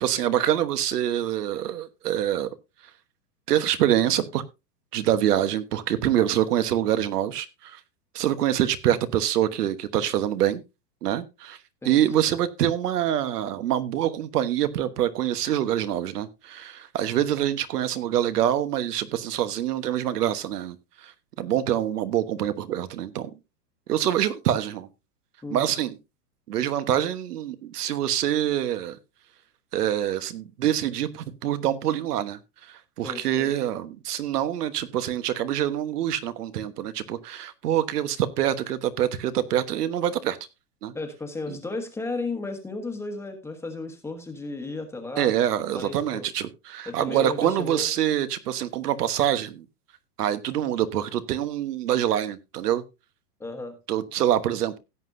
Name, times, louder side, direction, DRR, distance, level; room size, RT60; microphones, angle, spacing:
voice 1, 0.0-2.5 3.5-4.4 4.9-7.8 8.1-10.6 11.0-11.6 11.8-20.8 21.0-21.1 21.4-23.3 23.9-24.9 25.5-26.0 26.5-29.0 29.7-32.4 32.7-40.4 40.8-40.9 41.5-41.6 45.2-49.6 50.2-52.8 53.9-54.8, right 11 dB, 80° right, 1.3 m, -25 dB
voice 2, 25.4-25.7 33.0-33.5 40.9-45.3 45.7-46.3 46.8-47.9 53.4-53.8, left 2 dB, 5° left, 1.3 m, -34 dB
16.5 x 7.9 x 2.6 m
supercardioid pair, 160°, 46 cm